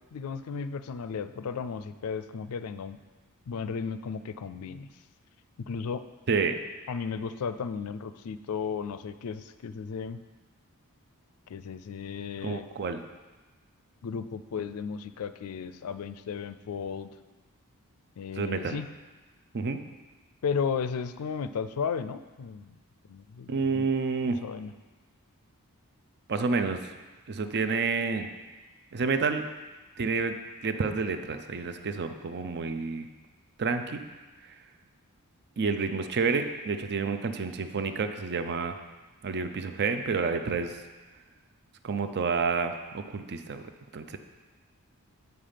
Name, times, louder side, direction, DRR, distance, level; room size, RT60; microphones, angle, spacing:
voice 1, 0.1-3.0 3.5-4.9 5.6-6.0 6.9-10.2 11.5-12.7 14.0-17.1 18.2-18.9 20.4-22.8 23.1-23.9 24.4-24.7, left 6 dB, 75° left, 12 dB, 0.4 m, -34 dB
voice 2, 6.3-6.6 12.4-13.0 18.4-18.8 19.5-19.8 23.5-24.4 26.3-26.8 27.3-28.3 28.9-29.5 30.0-30.4 30.6-33.1 33.6-34.0 35.6-38.8 39.2-40.8 41.8-43.6 43.9-44.2, right 4 dB, 50° right, 8 dB, 0.5 m, -29 dB
8.0 x 5.7 x 5.1 m, 1.3 s
head